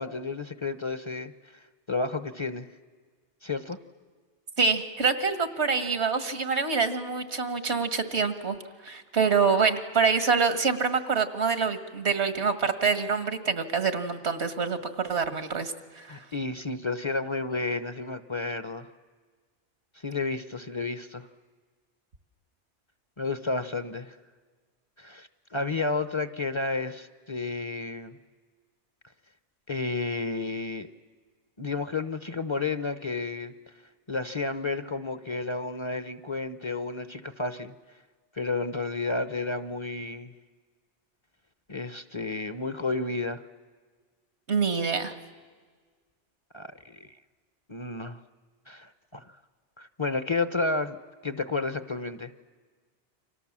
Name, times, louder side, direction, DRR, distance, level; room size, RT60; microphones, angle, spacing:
voice 1, 0.0-2.7 3.4-3.8 16.1-18.9 20.0-21.3 23.2-24.2 25.0-28.2 29.7-30.9 31.6-33.5 34.1-37.7 38.3-40.3 41.7-43.4 46.5-47.2 47.7-48.2 48.7-49.2 49.8-51.0 51.2-52.3, left 3 dB, 30° left, 11 dB, 0.8 m, -31 dB
voice 2, 4.6-16.1 44.5-45.1, right 5 dB, 80° right, 9 dB, 2.0 m, -26 dB
29.5 x 25.0 x 7.4 m, 1.5 s
omnidirectional pair, 1.1 m